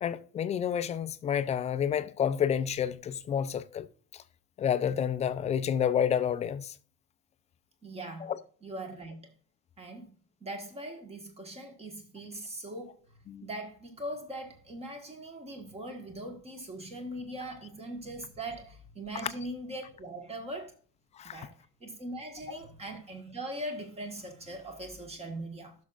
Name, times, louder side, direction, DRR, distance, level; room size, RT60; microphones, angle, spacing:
voice 1, 0.0-3.9 4.1-4.2 4.6-6.7 8.2-8.3 13.3-13.5 21.2-21.5 22.5-22.6, left 8 dB, 20° left, 0.4 m, -29 dB
voice 2, 7.8-8.3 8.6-9.2 9.8-10.1 10.4-13.0 13.4-20.7 21.2-25.7, right 1 dB, 20° right, 1.5 m, -41 dB
15.5 x 6.2 x 2.4 m
cardioid pair, 170°, 31 cm